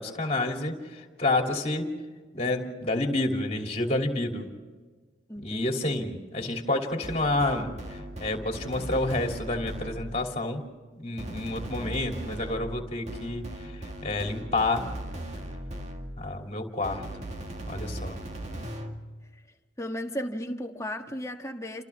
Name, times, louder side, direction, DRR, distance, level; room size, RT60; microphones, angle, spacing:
voice 1, 0.0-1.9 2.3-4.5 5.4-7.7 8.2-10.6 10.9-13.7 14.0-14.9 16.2-17.1 17.7-18.2, left 2 dB, 35° left, 3.0 m, -29 dB
voice 2, 5.3-5.7 19.8-21.8, equal, 15° left, 1.5 m, -35 dB
sound 1, 7.0-10.3 11.2-16.3 16.8-19.0, right 1 dB, 35° right, 2.1 m, -38 dB
29.5 x 28.0 x 3.6 m
head